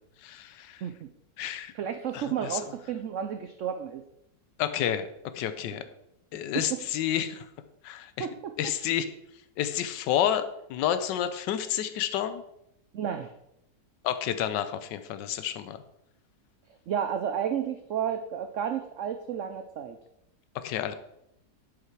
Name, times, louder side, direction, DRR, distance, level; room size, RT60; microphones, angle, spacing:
voice 1, 0.2-0.8 1.4-1.7 2.1-2.6 4.6-5.1 5.3-5.8 6.3-7.5 7.8-8.3 8.6-9.1 9.6-12.4 14.0-15.8 20.5-20.9, left 10 dB, 85° left, 11 dB, 1.3 m, -30 dB
voice 2, 1.7-4.0 5.7-5.8 6.5-6.6 8.2-8.7 12.9-13.3 16.9-20.0, right 8 dB, 85° right, 8 dB, 0.6 m, -32 dB
7.8 x 5.7 x 4.6 m, 0.82 s
omnidirectional pair, 1.9 m